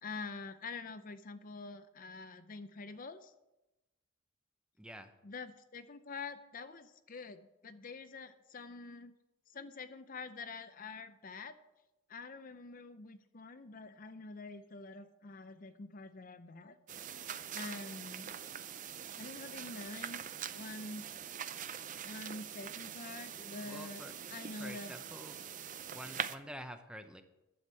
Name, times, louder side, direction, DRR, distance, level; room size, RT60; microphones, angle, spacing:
voice 1, 0.0-3.3 5.2-9.1 9.5-11.5 12.1-16.8 17.5-18.3 19.2-20.2 20.5-21.1 22.0-24.0 24.3-24.9, left 3 dB, 40° left, 10 dB, 0.6 m, -46 dB
voice 2, 4.8-5.1 23.6-24.1 24.6-25.4 25.9-27.2, equal, 5° right, 7 dB, 0.7 m, -48 dB
sound 1, 16.9-26.4, right 8 dB, 35° right, 0.5 m, -43 dB
11.5 x 7.1 x 7.6 m, 0.97 s
head